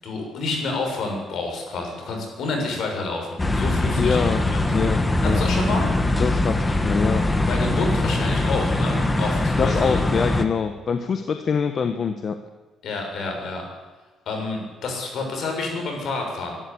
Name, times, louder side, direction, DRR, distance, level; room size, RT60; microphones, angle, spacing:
voice 1, 0.0-4.6 5.2-5.9 7.5-10.0 12.8-13.6 14.2-16.6, left 3 dB, 60° left, 2 dB, 6.7 m, -29 dB
sound 1, 3.4-10.4, left 2 dB, 15° left, 1.4 m, -22 dB
voice 2, 4.0-4.4 4.7-5.0 5.2-5.4 6.2-7.2 9.6-12.3, left 6 dB, 40° left, 8 dB, 1.2 m, -24 dB
24.5 x 12.5 x 8.7 m, 1.3 s
cardioid pair, 140°, 0 cm